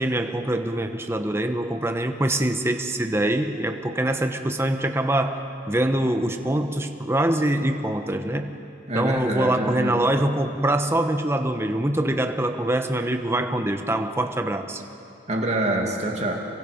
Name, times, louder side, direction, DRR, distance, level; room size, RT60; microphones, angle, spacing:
voice 1, 0.0-5.4 5.7-8.6 8.9-14.8, right 1 dB, 15° right, 6 dB, 1.1 m, -24 dB
voice 2, 8.9-10.0 15.3-16.5, right 1 dB, 35° right, 1 dB, 2.5 m, -26 dB
28.0 x 23.0 x 5.2 m, 2.7 s
head